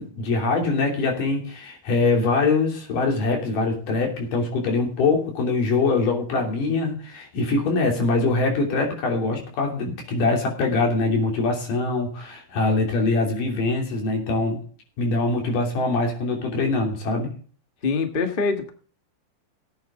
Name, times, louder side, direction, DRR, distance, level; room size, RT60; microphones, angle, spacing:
voice 1, 0.0-14.6 15.0-17.3, left 3 dB, 85° left, 1 dB, 4.7 m, -23 dB
voice 2, 17.8-18.7, left 4 dB, 55° left, 6 dB, 0.5 m, -24 dB
17.5 x 9.1 x 3.7 m, 0.42 s
omnidirectional pair, 3.7 m